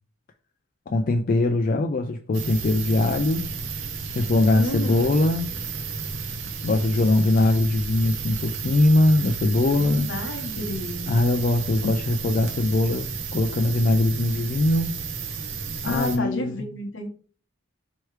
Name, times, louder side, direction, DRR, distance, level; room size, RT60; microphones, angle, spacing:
voice 1, 0.9-3.5 4.2-5.5 6.6-10.1 11.1-15.0 15.8-16.7, left 2 dB, 40° left, 0.3 m, -21 dB
sound 1, 2.3-16.2, right 5 dB, 65° right, 0.7 m, -33 dB
voice 2, 4.5-5.1 9.8-11.1 15.8-17.1, left 2 dB, 65° left, 1.0 m, -30 dB
4.6 x 3.1 x 3.2 m
head